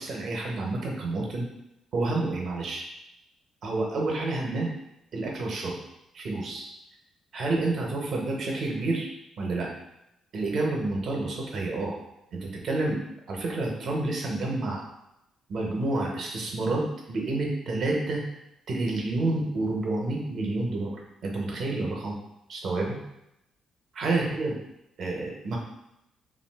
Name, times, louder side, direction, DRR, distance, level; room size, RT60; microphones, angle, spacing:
voice 1, 0.0-1.5 1.9-2.9 3.6-4.7 5.1-5.8 6.1-6.7 7.3-9.1 9.4-9.7 10.3-12.0 12.3-13.0 13.3-14.8 15.5-18.2 18.7-21.0 21.2-22.2 22.5-23.0 23.9-24.5 25.0-25.6, right 2 dB, 60° right, 0 dB, 0.8 m, -29 dB
2.5 x 2.4 x 3.4 m, 0.85 s
cardioid pair, 90°, 0 cm